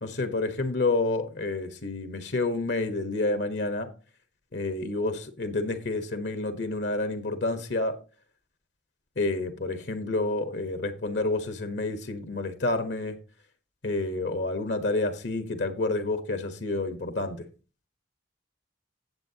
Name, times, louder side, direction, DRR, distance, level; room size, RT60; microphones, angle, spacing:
voice 1, 0.0-3.9 4.5-8.0 9.2-13.2 13.8-17.5, left 2 dB, 65° left, 1.2 m, -29 dB
17.5 x 7.7 x 2.8 m
head